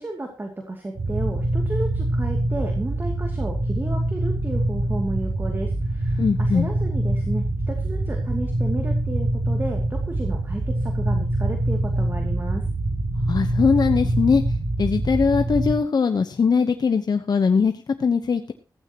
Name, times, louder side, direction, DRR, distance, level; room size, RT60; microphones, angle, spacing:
voice 1, 0.0-12.6, right 2 dB, 25° right, 3 dB, 2.5 m, -32 dB
sound 1, 1.0-15.8, right 1 dB, 75° right, 3.1 m, -24 dB
voice 2, 6.2-6.7 13.3-14.4 14.8-17.7 18.0-18.5, left 5 dB, 60° left, 7 dB, 1.0 m, -20 dB
15.5 x 15.0 x 3.0 m, 0.31 s
wide cardioid pair, 105°, 8 cm